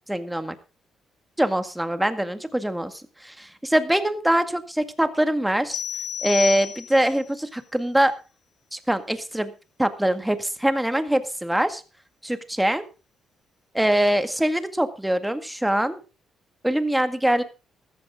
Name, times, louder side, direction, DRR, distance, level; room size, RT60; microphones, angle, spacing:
voice 1, 0.1-0.6 1.4-5.8 6.2-8.1 8.7-9.5 9.8-11.8 12.2-12.8 13.7-16.0 16.6-17.4, right 1 dB, 5° right, 10 dB, 1.9 m, -23 dB
sound 1, 5.7-7.2, left 9 dB, 75° left, 1.3 m, -30 dB
14.5 x 13.5 x 3.7 m, 0.32 s
cardioid pair, 90°, 0 cm